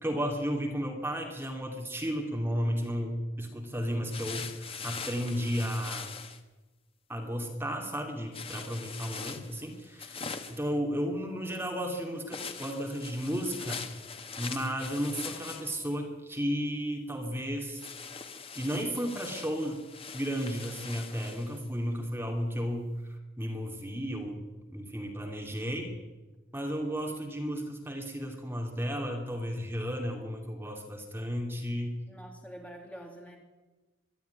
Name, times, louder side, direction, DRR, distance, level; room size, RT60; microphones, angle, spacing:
voice 1, 0.0-6.1 7.1-10.2 10.5-13.9 14.4-17.8 18.5-19.9 20.1-24.4 24.7-25.9 26.5-32.0, equal, 10° right, 1 dB, 2.7 m, -33 dB
sound 1, 4.1-6.4 8.3-10.7 12.3-15.9 17.8-21.6, left 5 dB, 30° left, 1.4 m, -42 dB
voice 2, 32.1-33.4, equal, 5° left, 2 dB, 2.7 m, -46 dB
22.0 x 13.0 x 9.6 m, 1.2 s
head